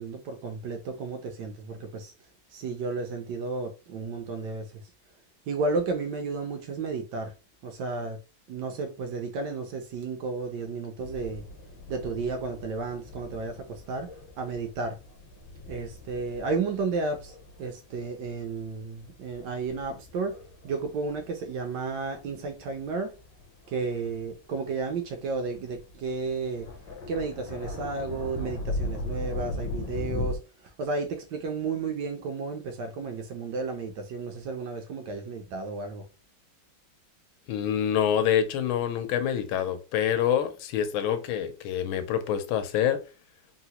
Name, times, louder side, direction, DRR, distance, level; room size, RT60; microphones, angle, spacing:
voice 1, 0.0-2.1 2.5-4.8 5.5-7.3 7.6-8.2 8.5-11.4 11.9-14.1 14.4-15.0 15.7-20.4 20.6-23.1 23.7-26.7 27.1-36.0, right 4 dB, 70° right, 1.0 m, -32 dB
sound 1, 11.0-30.4, left 2 dB, 70° left, 1.4 m, -39 dB
voice 2, 37.5-43.0, left 9 dB, 85° left, 1.4 m, -26 dB
3.7 x 2.0 x 2.8 m
omnidirectional pair, 2.2 m